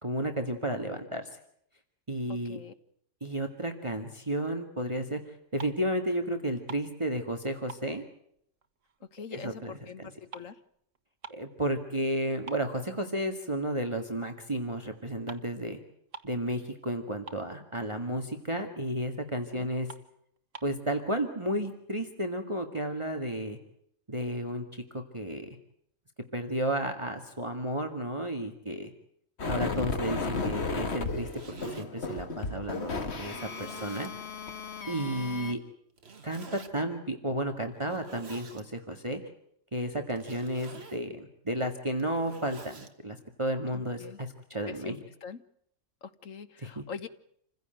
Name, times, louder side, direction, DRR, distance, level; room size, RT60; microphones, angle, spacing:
voice 1, 0.0-1.3 2.1-2.6 3.2-8.0 9.3-10.1 11.3-15.8 16.2-19.9 20.6-23.6 24.1-25.5 26.3-28.9 29.5-34.1 34.9-35.6 36.2-39.2 39.7-45.0 46.6-46.8, right 1 dB, 25° right, 5 dB, 2.0 m, -33 dB
voice 2, 2.3-2.7 9.1-10.6 19.6-19.7 34.9-35.1 43.7-44.2 44.6-45.4 46.0-47.1, left 6 dB, 80° left, 10 dB, 1.7 m, -43 dB
sound 1, 5.4-6.0 6.3-7.4 7.7-9.2 9.5-11.6 12.0-12.1 12.5-13.5 14.0-14.2 15.0-15.1 15.3-15.5 15.8-15.9 16.1-16.5 16.8-16.9 17.1-17.9 18.3-18.4 18.9-19.0 19.4-19.5 19.8-20.8, right 5 dB, 75° right, 1.8 m, -48 dB
sound 2, 29.4-35.5, left 3 dB, 55° left, 2.0 m, -34 dB
Zipper (clothing), 31.1-31.9 32.6-32.7 33.3-34.1 36.0-36.7 37.7-38.6 40.1-41.0 41.8-42.9, right 4 dB, 55° right, 2.0 m, -48 dB
28.0 x 16.0 x 9.1 m, 0.70 s
omnidirectional pair, 1.3 m